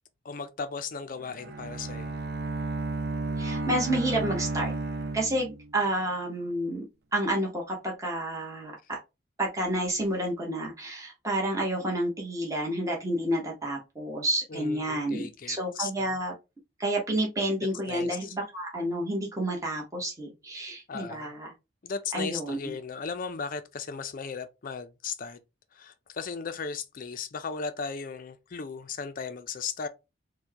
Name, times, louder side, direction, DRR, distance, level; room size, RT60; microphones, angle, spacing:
voice 1, 0.2-2.2 8.8-8.9 14.5-16.2 17.9-18.4 20.9-21.3 21.8-25.4 25.7-29.9, left 5 dB, 45° left, 0.4 m, -36 dB
Bowed string instrument, 1.2-5.9, right 3 dB, 55° right, 0.4 m, -33 dB
voice 2, 3.4-4.7 5.1-6.8 7.1-9.0 9.4-16.3 16.8-21.5 22.1-22.6, right 1 dB, 15° right, 1.0 m, -30 dB
4.3 x 2.2 x 2.8 m
head